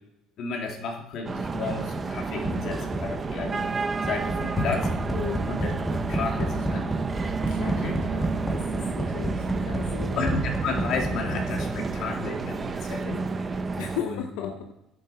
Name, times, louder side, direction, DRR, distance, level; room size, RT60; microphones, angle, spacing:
voice 1, 0.4-3.7 4.0-4.9 5.5-5.7 6.1-6.9 7.2-8.0 9.1-9.3 10.2-13.6 14.0-14.5, left 4 dB, 50° left, 2 dB, 2.4 m, -32 dB
sound 1, 1.2-14.0, right 4 dB, 20° right, 0.8 m, -31 dB
sound 2, 1.4-12.3, right 1 dB, 5° left, 1.9 m, -31 dB
voice 2, 5.1-5.5 7.5-7.8 8.1-10.2 13.8-14.7, left 10 dB, 80° left, 6 dB, 0.8 m, -36 dB
12.0 x 11.0 x 4.2 m, 0.91 s
cardioid pair, 145°, 0 cm